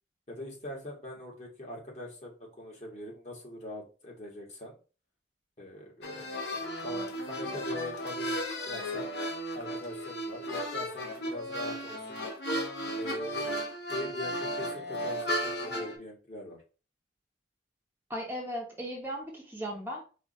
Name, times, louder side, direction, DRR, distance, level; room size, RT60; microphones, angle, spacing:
voice 1, 0.3-4.8 5.6-9.1 9.5-12.2 13.0-13.6 13.9-16.6, left 1 dB, 35° left, -2 dB, 1.6 m, -42 dB
sound 1, 6.0-16.0, equal, 65° left, 1.1 m, -35 dB
voice 2, 18.1-20.0, equal, 10° right, -1 dB, 0.8 m, -37 dB
4.8 x 2.5 x 4.2 m, 0.34 s
head